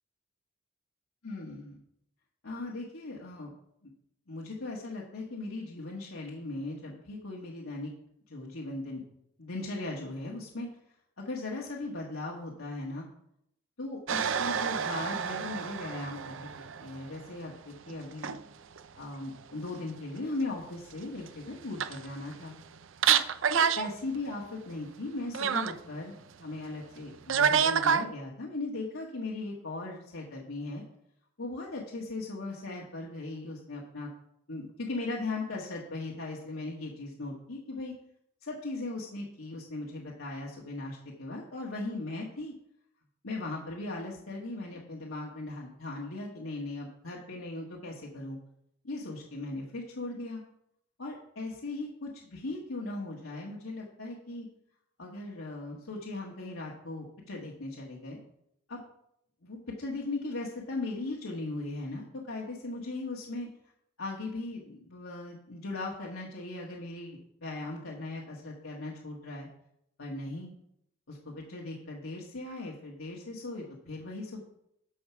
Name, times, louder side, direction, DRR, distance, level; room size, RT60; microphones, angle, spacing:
voice 1, 1.2-1.8 2.4-3.5 3.8-3.9 4.3-7.9 8.3-9.0 9.4-10.7 11.2-13.1 13.8-18.4 19.0-22.5 23.1-23.2 23.5-30.8 31.4-34.1 34.5-37.9 38.4-42.5 43.2-48.4 48.8-50.4 51.0-54.5 55.0-58.2 58.7-58.8 59.4-63.5 64.0-69.5 70.0-70.5 71.1-74.4, left 2 dB, 90° left, -3 dB, 1.6 m, -38 dB
sound 1, 14.1-17.3 17.9-18.4 18.8-18.9 21.2-21.3 21.5-22.3 22.7-22.8 23.0-23.9 24.1-24.2 25.3-25.7 27.3-28.0, right 7 dB, 70° right, 0.5 m, -28 dB
13.0 x 4.8 x 5.9 m, 0.74 s
head